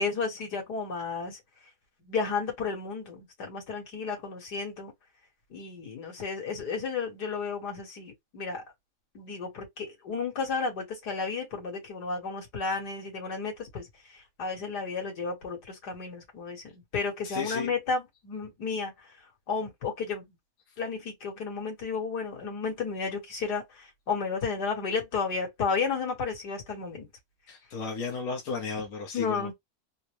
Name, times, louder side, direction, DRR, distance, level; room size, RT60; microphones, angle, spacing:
voice 1, 0.0-1.4 2.0-4.9 5.5-8.6 9.1-13.9 14.4-18.9 19.5-20.2 20.8-27.1 29.1-29.5, left 5 dB, 85° left, 2.4 m, -32 dB
voice 2, 17.2-17.7 27.5-29.5, left 4 dB, 60° left, 1.2 m, -34 dB
4.3 x 2.2 x 3.0 m
omnidirectional pair, 1.7 m